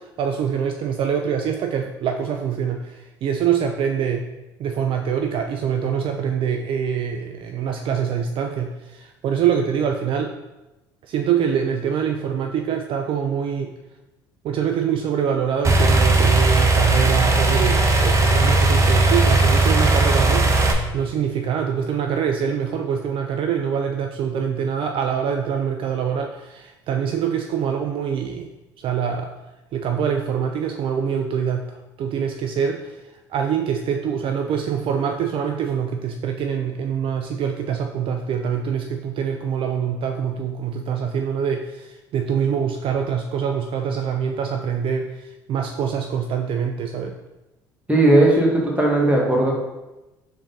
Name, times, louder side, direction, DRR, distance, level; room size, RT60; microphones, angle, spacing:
voice 1, 0.0-4.2 4.6-10.3 11.0-13.7 14.4-28.5 28.8-29.3 29.7-47.1, right 7 dB, 55° right, 4 dB, 0.4 m, -24 dB
sound 1, 15.6-20.7, right 2 dB, 30° right, 0.8 m, -17 dB
voice 2, 47.9-49.6, right 1 dB, 10° right, -2 dB, 1.4 m, -17 dB
3.8 x 3.6 x 3.9 m, 1.0 s
hypercardioid pair, 70°, 11 cm